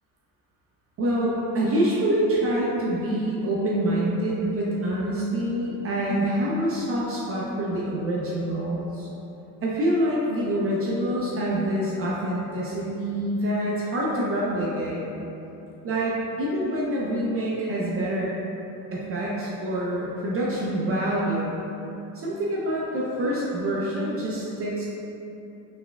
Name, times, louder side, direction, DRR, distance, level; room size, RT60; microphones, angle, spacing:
voice 1, 1.0-9.1 9.6-15.0 15.8-18.3 18.9-21.5 22.1-24.9, right 1 dB, 35° right, -5 dB, 0.5 m, -26 dB
4.1 x 3.4 x 2.2 m, 2.9 s
cardioid pair, 120°, 41 cm